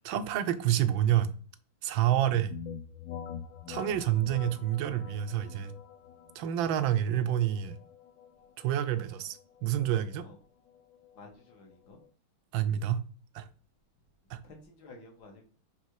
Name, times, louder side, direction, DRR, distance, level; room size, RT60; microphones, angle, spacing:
voice 1, 0.0-1.3 1.8-2.5 3.7-5.7 6.3-7.8 8.6-10.2 12.5-13.0 13.3-13.5 14.3-14.4, right 11 dB, 75° right, 1.4 m, -28 dB
sound 1, 2.5-12.1, left 8 dB, 75° left, 1.3 m, -46 dB
voice 2, 11.1-12.0 14.4-15.5, left 2 dB, 55° left, 1.9 m, -52 dB
5.4 x 4.1 x 4.7 m
omnidirectional pair, 2.2 m